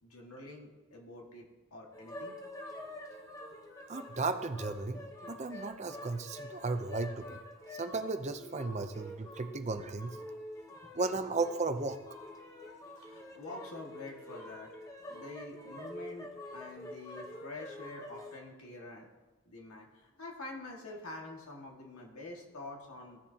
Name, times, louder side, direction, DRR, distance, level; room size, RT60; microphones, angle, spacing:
voice 1, 0.0-2.4 13.0-14.7 15.1-19.1 19.5-23.2, left 2 dB, 90° left, -1 dB, 1.8 m, -47 dB
sound 1, 1.9-18.4, left 1 dB, 15° left, 0.8 m, -47 dB
voice 2, 3.9-7.4 7.7-10.2 10.9-12.0, right 3 dB, 30° right, 8 dB, 0.5 m, -35 dB
15.5 x 7.1 x 2.8 m, 1.2 s
head